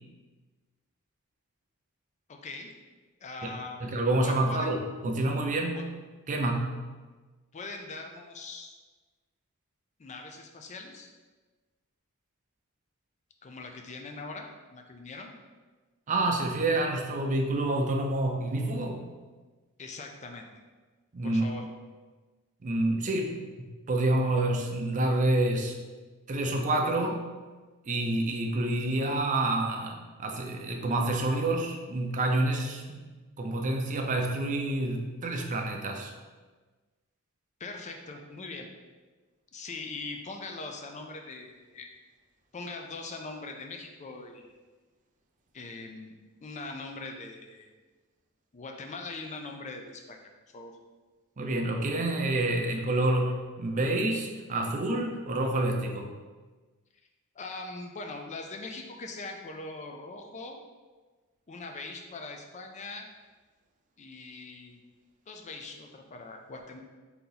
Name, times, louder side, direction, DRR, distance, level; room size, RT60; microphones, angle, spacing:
voice 1, 2.3-2.7 3.2-3.8 4.2-4.7 5.7-5.8 7.5-8.8 10.0-11.1 13.4-15.3 19.8-20.5 21.2-21.6 37.6-38.7 39.5-41.9 42.5-44.5 45.5-46.1 46.4-47.7 48.5-50.7 57.4-60.6 61.5-63.1 64.0-64.8 65.3-66.8, left 3 dB, 30° left, 3 dB, 0.4 m, -41 dB
voice 2, 3.8-5.8 6.3-6.8 16.1-19.0 21.1-21.5 22.6-25.8 26.3-27.2 27.9-33.0 33.4-36.1 51.4-56.1, right 2 dB, 35° right, 2 dB, 0.5 m, -28 dB
3.9 x 2.8 x 3.9 m, 1.3 s
head